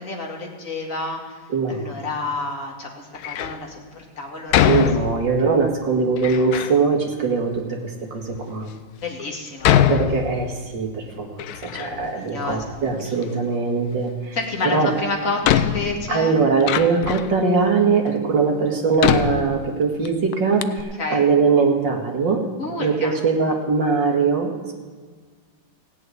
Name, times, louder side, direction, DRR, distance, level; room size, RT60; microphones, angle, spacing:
voice 1, 0.0-1.4 1.7-4.7 9.0-9.8 11.9-12.8 13.0-13.1 14.3-16.4 21.0-21.2 22.6-23.2, left 3 dB, 40° left, 0 dB, 2.5 m, -29 dB
voice 2, 1.5-2.1 4.7-8.7 9.9-15.0 16.1-22.4 22.8-24.7, right 4 dB, 60° right, 1 dB, 2.5 m, -21 dB
Door, 3.1-3.6 4.5-5.5 6.2-6.8 7.6-7.7 8.3-8.4 9.6-10.8 11.1-12.2 12.5-13.3 14.6-14.7 15.4-17.4 18.1-18.2 19.0-20.1 20.3-20.4 20.6-20.8, left 10 dB, 85° left, 0.8 m, -23 dB
16.5 x 6.9 x 9.4 m, 1.5 s
omnidirectional pair, 2.3 m